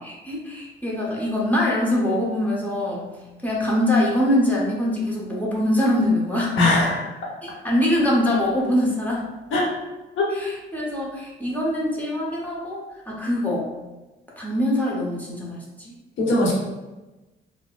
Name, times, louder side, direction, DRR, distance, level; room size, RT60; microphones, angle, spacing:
voice 1, 0.0-3.1 3.4-6.5 7.4-9.3 10.3-13.7 14.4-15.6, left 1 dB, 10° left, -5 dB, 0.9 m, -23 dB
voice 2, 6.6-7.1 9.5-9.6 10.2-10.3 16.2-16.6, left 2 dB, 75° left, -3 dB, 1.1 m, -20 dB
4.1 x 2.2 x 2.4 m, 1.1 s
cardioid pair, 90°, 20 cm